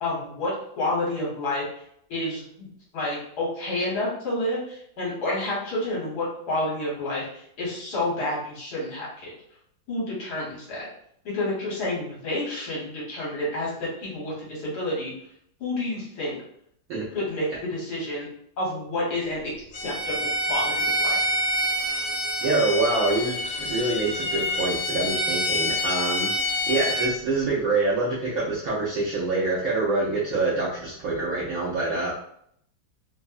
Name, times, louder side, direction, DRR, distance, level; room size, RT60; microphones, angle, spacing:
voice 1, 0.0-1.6 2.1-9.3 9.9-10.9 11.3-15.1 15.6-16.4 17.1-18.3 18.6-21.3, left 1 dB, 60° left, -6 dB, 1.5 m, -29 dB
Bowed string instrument, 19.7-27.1, equal, 80° left, 1.3 m, -27 dB
voice 2, 22.4-26.3 26.7-32.1, right 3 dB, 70° right, -5 dB, 0.8 m, -25 dB
3.3 x 2.0 x 2.4 m, 0.69 s
omnidirectional pair, 2.1 m